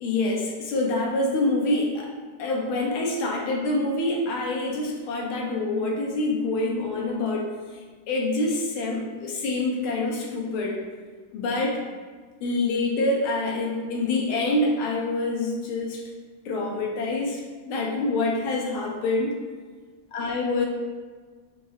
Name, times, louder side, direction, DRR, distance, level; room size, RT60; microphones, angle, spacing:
voice 1, 0.0-2.1 2.4-10.8 11.3-11.8 12.4-16.0 16.4-17.4 17.7-19.3 20.1-20.7, left 2 dB, 80° left, -1 dB, 1.6 m, -26 dB
5.7 x 2.7 x 3.1 m, 1.5 s
omnidirectional pair, 2.4 m